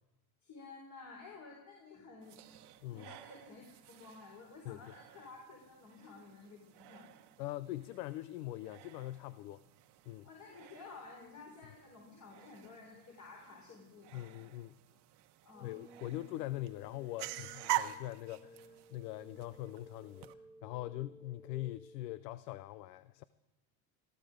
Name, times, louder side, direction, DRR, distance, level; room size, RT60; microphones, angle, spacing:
voice 1, 0.4-2.6 2.9-7.1 10.2-14.3 15.4-15.7, left 4 dB, 35° left, -1 dB, 4.4 m, -53 dB
sound 1, 2.2-20.3, right 15 dB, 55° right, 1.1 m, -46 dB
voice 2, 2.8-3.1 4.6-4.9 7.4-9.6 10.1-10.3 14.1-14.8 15.6-20.3 20.6-23.2, left 15 dB, 90° left, 16 dB, 0.6 m, -42 dB
sound 2, 15.5-22.0, equal, 5° right, 1.7 m, -58 dB
19.5 x 14.5 x 5.0 m, 1.0 s
supercardioid pair, 100°, 47 cm